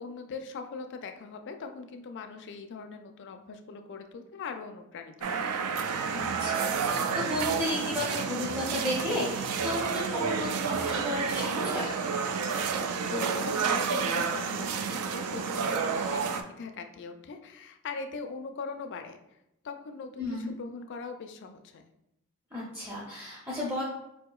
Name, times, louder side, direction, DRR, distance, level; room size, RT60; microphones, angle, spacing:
voice 1, 0.0-5.4 12.8-16.2 16.5-19.2 19.6-21.8, left 4 dB, 50° left, 6 dB, 0.4 m, -41 dB
sound 1, 5.2-16.4, right 5 dB, 75° right, 0.3 m, -30 dB
sound 2, 5.7-11.3, right 1 dB, 50° right, 1.0 m, -47 dB
voice 2, 6.1-11.9 20.2-20.5 22.5-23.8, left 1 dB, 10° right, -7 dB, 0.6 m, -33 dB
4.5 x 2.8 x 2.3 m, 0.86 s
head